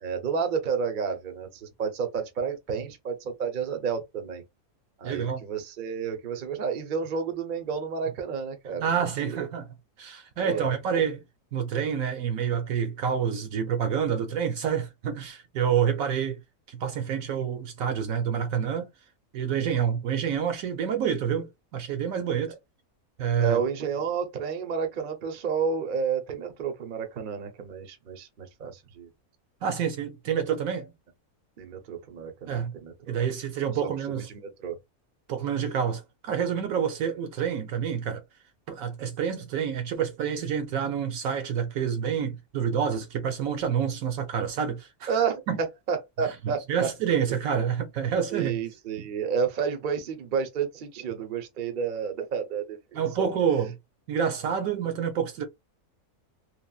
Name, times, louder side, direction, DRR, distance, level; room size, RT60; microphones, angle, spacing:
voice 1, 0.0-4.4 5.0-9.5 10.4-10.7 23.4-29.1 31.6-33.1 33.8-34.8 45.1-45.4 45.9-46.9 47.3-47.4 48.3-53.3, right 6 dB, 45° right, 0.7 m, -31 dB
voice 2, 5.0-5.4 8.8-9.7 10.0-11.2 11.5-16.4 16.7-18.9 19.3-22.5 23.2-23.6 29.6-30.9 32.5-32.7 33.1-34.3 35.3-38.2 38.7-45.1 45.5-45.6 46.2-48.6 49.0-49.1 52.9-53.7 54.1-55.4, right 7 dB, 70° right, 1.0 m, -28 dB
3.4 x 2.1 x 2.3 m
omnidirectional pair, 1.6 m